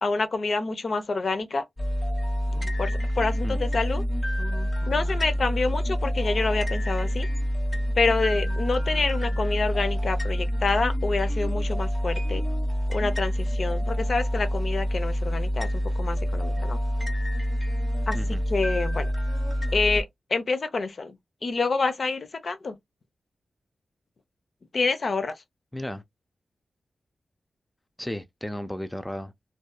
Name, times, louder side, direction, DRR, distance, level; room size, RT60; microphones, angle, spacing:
voice 1, 0.0-1.6 2.8-4.0 4.8-7.3 7.9-12.4 12.9-16.8 18.1-19.1 19.7-21.2 21.4-22.8 24.7-25.4, left 3 dB, 60° left, 0.5 m, -27 dB
sound 1, 1.8-20.0, equal, 35° left, 1.0 m, -27 dB
voice 2, 25.7-26.0 28.0-29.3, left 1 dB, 5° left, 0.4 m, -34 dB
2.7 x 2.3 x 2.2 m
cardioid pair, 65°, 0 cm